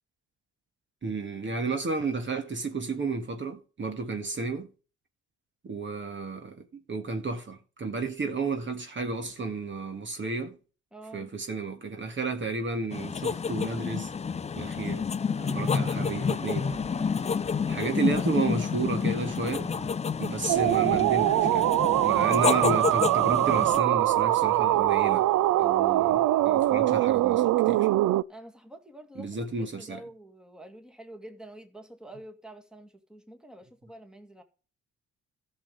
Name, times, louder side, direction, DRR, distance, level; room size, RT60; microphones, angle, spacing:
voice 1, 1.0-4.7 5.6-10.6 11.1-14.1 14.6-15.0 15.5-16.8 17.7-19.7 20.2-21.7 22.0-25.3 25.6-27.9 29.2-30.0, right 3 dB, 40° right, 1.8 m, -32 dB
voice 2, 10.9-11.3 15.5-15.8 17.1-17.4 28.3-34.4, right 1 dB, ahead, 2.0 m, -47 dB
sound 1, 12.9-23.8, left 6 dB, 20° left, 0.4 m, -29 dB
sound 2, 14.7-19.9, right 3 dB, 25° right, 2.9 m, -46 dB
sound 3, 20.5-28.2, right 14 dB, 75° right, 0.5 m, -23 dB
13.5 x 6.5 x 5.2 m
cardioid pair, 90°, 30 cm